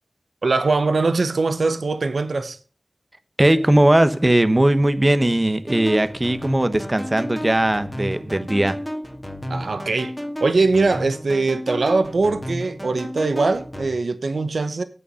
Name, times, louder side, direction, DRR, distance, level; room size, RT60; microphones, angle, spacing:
voice 1, 0.4-2.6 9.5-10.1 10.4-14.8, right 3 dB, 90° right, 0.8 m, -21 dB
voice 2, 3.4-8.8, right 1 dB, 30° right, 1.0 m, -18 dB
sound 1, 5.7-13.9, equal, 5° left, 2.2 m, -32 dB
8.3 x 7.0 x 6.3 m
wide cardioid pair, 65°, 0 cm